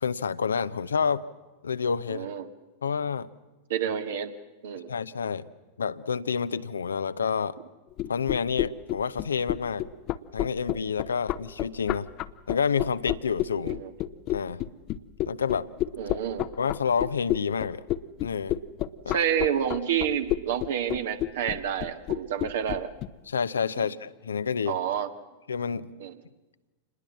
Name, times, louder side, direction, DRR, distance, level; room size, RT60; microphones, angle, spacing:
voice 1, 0.0-1.2 1.6-2.3 2.8-3.3 4.9-5.4 5.8-7.5 8.1-9.9 10.3-12.1 12.5-13.8 14.3-14.6 15.3-15.7 16.6-17.8 18.2-18.6 19.0-19.2 23.3-24.8 25.5-26.0, left 6 dB, 70° left, 14 dB, 0.8 m, -28 dB
voice 2, 2.1-2.5 3.7-4.3 4.6-4.9 13.6-13.9 16.0-16.5 19.1-22.9 23.8-23.9 24.7-25.1 26.0-26.2, right 9 dB, 60° right, 8 dB, 1.8 m, -29 dB
sound 1, 7.9-23.1, left 14 dB, 40° left, 0.9 m, -29 dB
27.5 x 20.5 x 7.3 m, 1.2 s
figure-of-eight pair, 90°, 0 cm